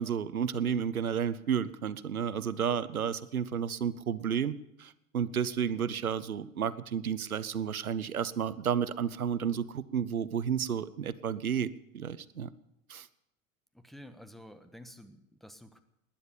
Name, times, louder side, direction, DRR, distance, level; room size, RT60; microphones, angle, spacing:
voice 1, 0.0-12.5 12.9-13.1, right 8 dB, 85° right, 17 dB, 0.8 m, -32 dB
voice 2, 13.7-15.8, equal, ahead, 9 dB, 1.4 m, -50 dB
20.0 x 10.5 x 6.9 m, 0.83 s
figure-of-eight pair, 85°, 42 cm